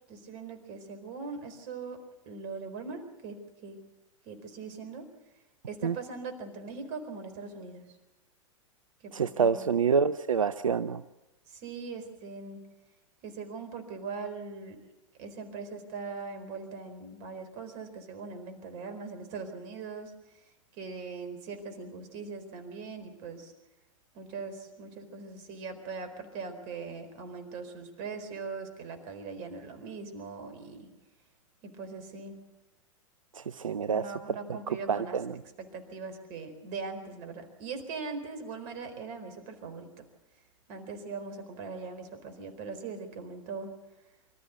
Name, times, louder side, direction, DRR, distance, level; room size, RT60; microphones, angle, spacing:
voice 1, 0.1-3.8 4.2-5.1 5.7-7.8 9.0-9.8 11.5-12.6 13.2-14.8 15.2-20.1 20.7-23.5 24.1-30.9 31.6-32.4 33.9-35.2 35.6-40.1 40.7-43.7, right 4 dB, 45° right, 8 dB, 4.4 m, -41 dB
voice 2, 9.1-11.0 33.5-34.0 34.9-35.3, right 6 dB, 80° right, 13 dB, 0.6 m, -27 dB
25.0 x 14.0 x 8.2 m, 0.99 s
figure-of-eight pair, 100°, 17 cm